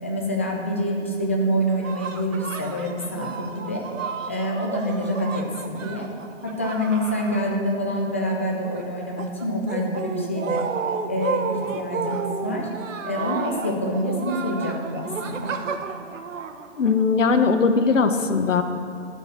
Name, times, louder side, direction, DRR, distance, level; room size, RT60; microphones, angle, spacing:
voice 1, 0.0-3.8 4.3-6.1 6.4-10.6 11.1-12.7 13.0-15.6, equal, 10° left, 0 dB, 0.4 m, -26 dB
sound 1, 1.8-8.0 8.3-17.2, right 6 dB, 85° right, 1.2 m, -32 dB
voice 2, 16.8-18.6, left 4 dB, 80° left, 7 dB, 1.4 m, -19 dB
12.0 x 6.6 x 8.2 m, 2.8 s
hypercardioid pair, 155°, 37 cm